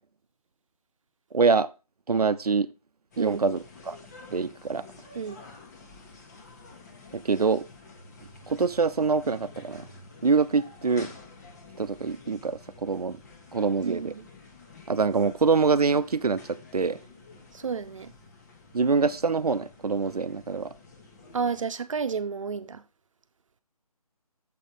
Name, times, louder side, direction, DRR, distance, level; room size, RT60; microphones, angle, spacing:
voice 1, 1.3-1.7 2.1-2.7 3.2-4.0 4.3-4.8 7.1-7.6 8.5-9.9 10.2-11.1 11.8-13.2 13.5-14.1 14.9-16.4 16.7-17.0 18.7-20.7, right 4 dB, 85° right, 0.7 m, -25 dB
sound 1, 3.1-21.7, left 3 dB, 30° left, 1.3 m, -50 dB
voice 2, 3.2-3.5 5.1-5.4 13.8-14.2 17.5-18.1 21.3-22.8, right 5 dB, 55° right, 0.9 m, -31 dB
7.5 x 4.1 x 5.1 m
figure-of-eight pair, 155°, 19 cm